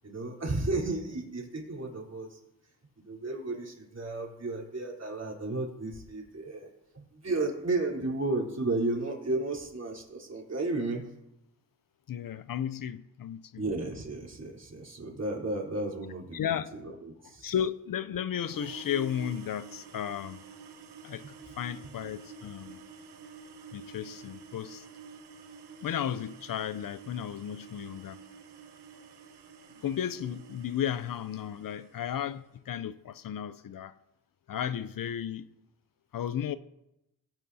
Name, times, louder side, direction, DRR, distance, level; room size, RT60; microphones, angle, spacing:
voice 1, 0.0-2.4 3.0-6.7 6.9-11.0 13.6-17.5 21.2-21.3, right 2 dB, 40° right, 3.8 m, -33 dB
voice 2, 12.1-13.6 16.3-16.7 17.4-20.4 21.0-22.8 23.7-24.9 25.8-28.2 29.8-33.9 34.5-35.5 36.1-36.6, left 9 dB, 60° left, 0.6 m, -34 dB
sound 1, 18.4-32.3, right 5 dB, 80° right, 1.1 m, -49 dB
18.0 x 9.1 x 2.8 m
supercardioid pair, 45°, 39 cm